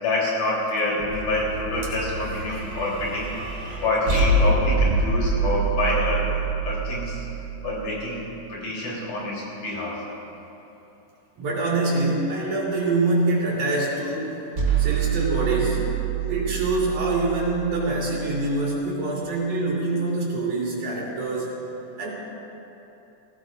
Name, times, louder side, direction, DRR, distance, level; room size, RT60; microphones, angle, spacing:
voice 1, 0.0-3.3 3.8-6.3 6.6-7.3 7.6-10.1, left 2 dB, 80° left, -6 dB, 5.2 m, -27 dB
sound 1, 1.0-8.3 14.6-18.7, right 4 dB, 40° right, 2.0 m, -26 dB
voice 2, 11.4-14.5 14.8-16.0 16.3-21.5 22.0-22.1, right 2 dB, 75° right, -6 dB, 4.2 m, -25 dB
20.0 x 16.5 x 2.6 m, 2.9 s
omnidirectional pair, 3.5 m